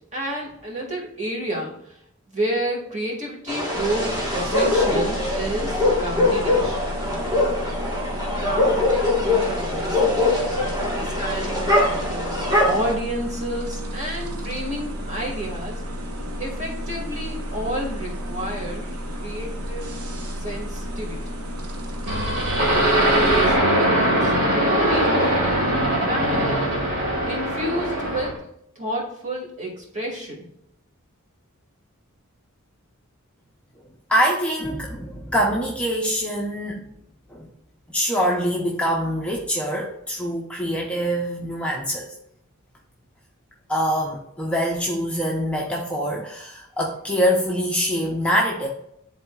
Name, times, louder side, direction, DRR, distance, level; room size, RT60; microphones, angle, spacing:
voice 1, 0.1-2.0 2.3-6.9 8.4-15.8 16.4-19.9 20.4-21.4 22.9-25.7 26.0-26.7 27.3-28.4 28.8-30.5, right 1 dB, 35° right, -2 dB, 2.1 m, -30 dB
sound 1, 3.5-12.9, left 2 dB, 15° right, 1.4 m, -22 dB
sound 2, 3.7-23.6, equal, 85° right, 1.1 m, -32 dB
sound 3, 22.1-28.4, right 1 dB, 55° right, 1.9 m, -21 dB
voice 2, 34.1-36.8 37.3-37.5 37.9-42.1 43.7-48.7, equal, 5° left, -2 dB, 0.6 m, -24 dB
10.5 x 4.0 x 2.3 m, 0.76 s
head